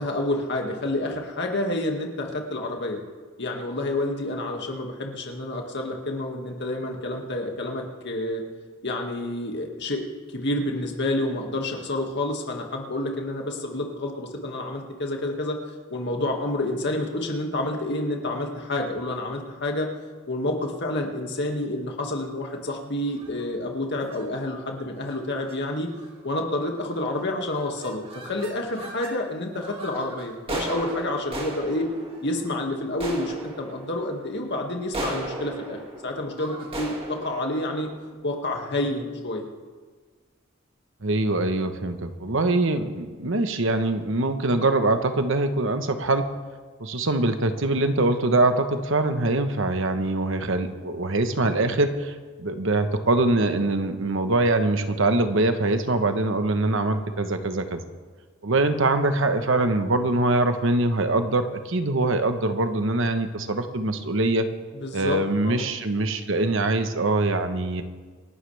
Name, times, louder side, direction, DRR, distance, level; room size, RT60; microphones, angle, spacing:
voice 1, 0.0-3.0 3.4-8.4 8.8-10.0 10.3-15.6 15.9-19.9 20.3-25.9 26.2-31.9 32.2-37.9 38.2-39.4 64.7-65.7, left 1 dB, 60° left, 1 dB, 2.1 m, -29 dB
sound 1, 23.1-23.5 24.0-24.3 25.0-25.2 25.5-25.6 25.9-26.3 26.8-27.2 27.5-29.2 29.5-38.7, right 1 dB, 30° right, 2.4 m, -37 dB
voice 2, 41.0-46.3 46.8-57.8 58.4-64.5 64.9-67.8, right 2 dB, 65° right, 8 dB, 1.2 m, -23 dB
27.5 x 11.5 x 3.5 m, 1.4 s
head